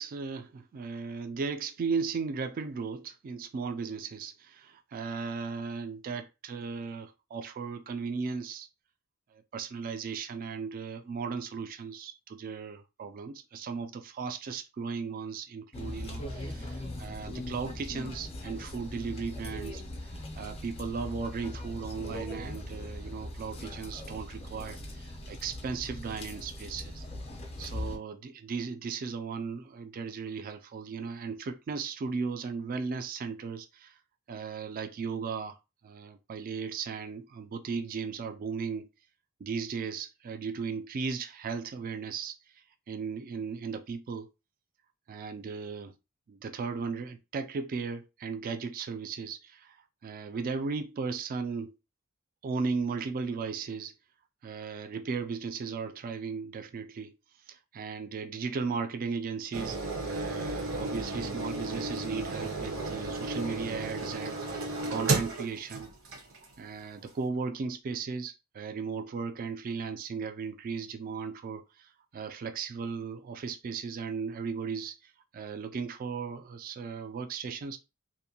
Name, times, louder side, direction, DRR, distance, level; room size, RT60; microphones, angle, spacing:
voice 1, 0.0-8.7 9.3-27.0 27.6-33.9 34.3-35.6 35.8-38.9 39.4-42.4 42.9-44.3 45.1-45.9 46.3-49.8 50.0-51.7 52.4-53.9 54.4-57.2 57.5-59.8 60.0-65.9 66.6-77.8, right 5 dB, 40° right, 0.3 m, -36 dB
sound 1, 15.7-28.0, left 1 dB, 25° left, 0.5 m, -40 dB
sound 2, 59.5-66.5 67.1-67.2, right 2 dB, 65° right, 0.8 m, -33 dB
2.6 x 2.1 x 2.7 m
head